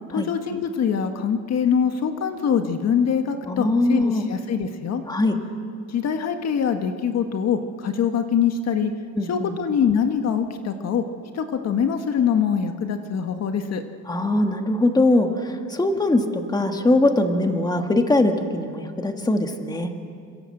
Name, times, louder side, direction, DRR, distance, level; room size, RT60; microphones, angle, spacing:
voice 1, 0.1-5.0 5.9-8.9 9.3-11.0 11.3-13.8, left 7 dB, 55° left, 6 dB, 1.6 m, -23 dB
voice 2, 3.5-4.2 5.1-5.4 9.2-9.5 14.1-20.0, left 2 dB, 10° left, 5 dB, 1.9 m, -21 dB
27.5 x 26.5 x 7.9 m, 2.3 s
cardioid pair, 155°, 32 cm